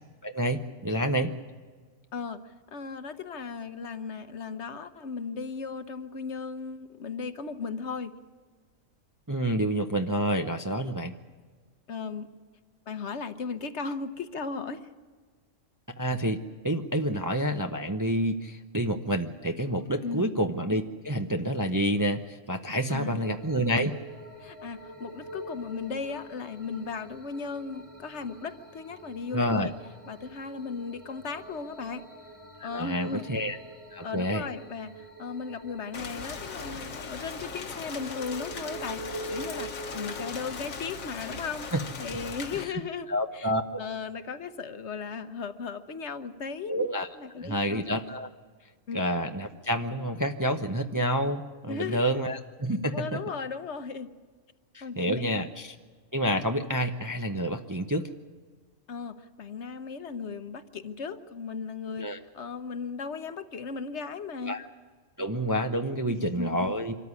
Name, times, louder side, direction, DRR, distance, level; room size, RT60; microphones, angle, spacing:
voice 1, 0.2-1.3 9.3-11.1 16.0-16.4 16.6-23.9 29.3-29.7 32.6-33.6 33.9-34.4 41.7-41.8 42.5-42.8 43.1-43.8 46.7-47.1 47.4-48.3 48.9-53.2 54.7-55.7 56.1-58.1 62.0-62.2 64.4-64.7 65.2-67.0, equal, 20° right, 6 dB, 0.6 m, -28 dB
voice 2, 2.1-8.2 11.9-12.3 12.9-14.9 20.0-20.4 22.9-23.3 24.4-29.7 30.1-32.1 32.6-33.5 34.0-41.7 42.0-43.1 43.3-43.5 43.8-46.7 47.1-47.9 48.9-49.0 51.7-52.2 52.9-54.1 54.8-55.3 58.9-64.6 66.1-66.8, left 5 dB, 60° left, 11 dB, 1.2 m, -36 dB
sound 1, 23.2-40.3, right 2 dB, 65° right, 4.4 m, -45 dB
Rain, 35.9-42.6, left 5 dB, 85° left, 1.8 m, -39 dB
25.0 x 13.5 x 9.7 m, 1.5 s
omnidirectional pair, 1.4 m